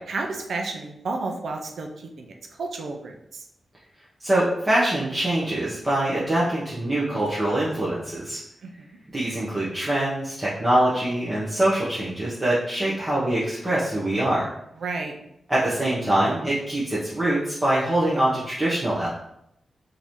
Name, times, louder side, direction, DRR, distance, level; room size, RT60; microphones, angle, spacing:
voice 1, 0.1-3.5 8.6-8.7 14.8-15.2, right 3 dB, 75° right, 2 dB, 0.5 m, -32 dB
voice 2, 4.2-8.4 9.1-14.5 15.5-19.1, right 1 dB, 20° right, -8 dB, 0.8 m, -24 dB
3.8 x 2.6 x 3.0 m, 0.78 s
wide cardioid pair, 125°, 0 cm